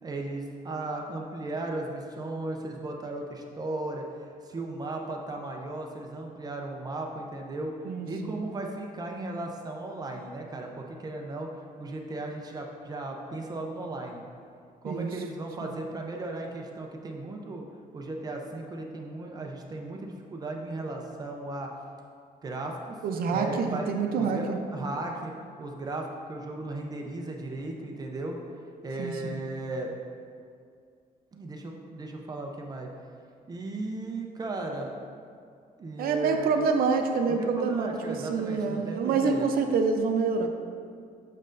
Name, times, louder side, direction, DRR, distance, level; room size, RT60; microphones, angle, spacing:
voice 1, 0.0-7.8 8.1-14.2 14.8-17.6 17.9-21.7 22.4-23.0 23.2-23.9 24.2-25.3 25.6-28.4 28.8-29.9 31.3-32.9 33.5-35.0 35.8-36.6 37.3-39.5, right 2 dB, 25° right, 1 dB, 0.5 m, -36 dB
voice 2, 7.9-8.4 14.8-15.1 23.0-24.6 29.0-29.4 36.0-40.5, right 5 dB, 80° right, 4 dB, 0.6 m, -27 dB
7.6 x 6.4 x 2.5 m, 2.2 s
cardioid pair, 170°, 15 cm